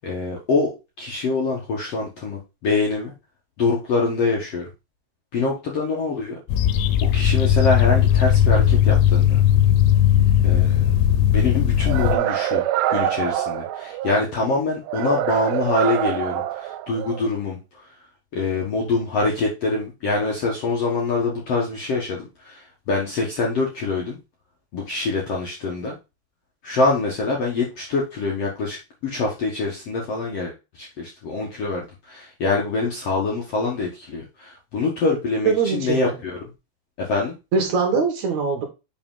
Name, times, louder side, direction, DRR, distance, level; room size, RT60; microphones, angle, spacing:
voice 1, 0.0-0.7 1.0-3.1 3.6-4.6 5.3-6.3 7.1-9.4 10.4-10.8 11.3-12.6 12.9-17.6 18.3-24.2 24.7-25.9 26.6-31.8 32.1-36.4 37.1-37.3, left 3 dB, 70° left, -2 dB, 1.5 m, -24 dB
sound 1, 6.5-12.2, left 10 dB, 85° left, 2.7 m, -17 dB
sound 2, 11.9-14.3 14.9-17.3, right 13 dB, 85° right, 2.7 m, -25 dB
voice 2, 35.5-36.2 37.5-38.6, right 5 dB, 60° right, 3 dB, 2.2 m, -22 dB
6.0 x 5.0 x 3.7 m, 0.26 s
omnidirectional pair, 4.9 m